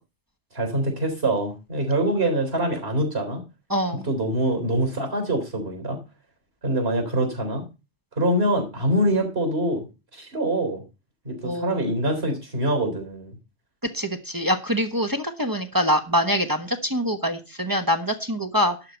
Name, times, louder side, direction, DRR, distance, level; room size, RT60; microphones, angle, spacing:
voice 1, 0.5-3.4 4.0-6.0 6.6-7.6 8.2-9.8 10.1-10.8 11.2-13.4, right 1 dB, 55° right, 4 dB, 4.3 m, -24 dB
voice 2, 3.7-4.1 11.4-11.8 13.9-18.8, equal, 20° right, 8 dB, 1.1 m, -24 dB
11.5 x 4.6 x 8.0 m, 0.29 s
omnidirectional pair, 1.3 m